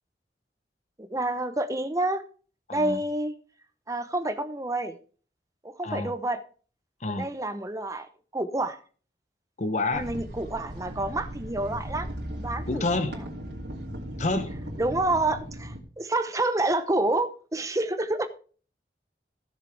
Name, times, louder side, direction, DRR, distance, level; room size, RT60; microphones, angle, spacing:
voice 1, 1.0-2.2 2.7-3.3 3.9-5.0 5.6-6.4 7.0-8.8 9.9-12.1 12.4-12.8 14.8-18.3, right 2 dB, 20° right, 0.8 m, -28 dB
voice 2, 2.7-3.0 5.8-6.1 7.0-7.3 9.6-10.1 12.7-13.2 14.2-14.6, left 2 dB, 40° left, 0.8 m, -28 dB
sound 1, 9.9-15.8, equal, 90° right, 2.9 m, -37 dB
15.5 x 6.7 x 3.4 m
head